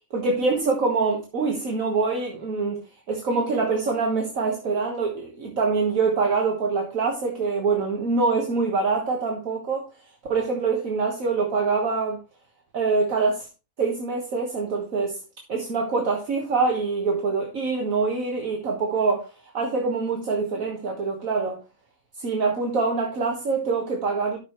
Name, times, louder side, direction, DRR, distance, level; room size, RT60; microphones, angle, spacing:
voice 1, 0.1-2.8 3.1-9.9 10.3-12.2 12.7-13.5 13.8-15.2 15.5-19.3 19.5-21.6 22.2-24.4, right 4 dB, 60° right, 1.8 m, -24 dB
11.5 x 6.2 x 3.1 m
omnidirectional pair, 1.6 m